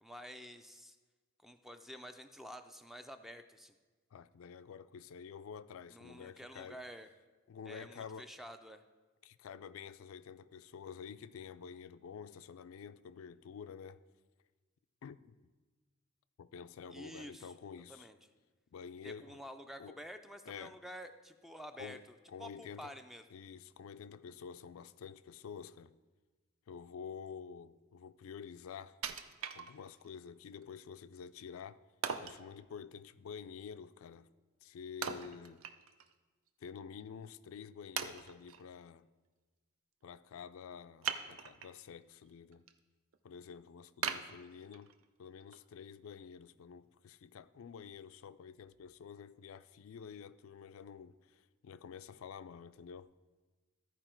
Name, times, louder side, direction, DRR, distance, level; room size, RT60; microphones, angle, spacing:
voice 1, 0.0-1.0 1.4-3.7 5.9-7.1 7.7-8.8 16.9-17.5 17.9-18.1 19.0-23.2, equal, ahead, 0.4 m, -50 dB
voice 2, 4.1-6.8 7.5-8.3 9.2-14.0 15.0-15.5 16.4-18.1 18.7-19.4 19.8-20.0 20.5-20.8 21.8-22.9 23.3-25.9 26.7-29.0 29.5-31.8 32.2-34.3 34.6-35.6 36.6-39.1 40.0-42.7 43.2-44.9 45.2-53.1, left 6 dB, 75° left, 0.4 m, -49 dB
Wood, 29.0-30.1 30.6-30.7 32.0-32.4 35.0-36.1 36.5-36.6 37.2-37.3 38.0-38.6 41.0-41.8 42.3-42.7 43.1-43.2 44.0-45.0 45.5-45.6, right 7 dB, 75° right, 0.5 m, -40 dB
14.0 x 4.8 x 4.4 m
head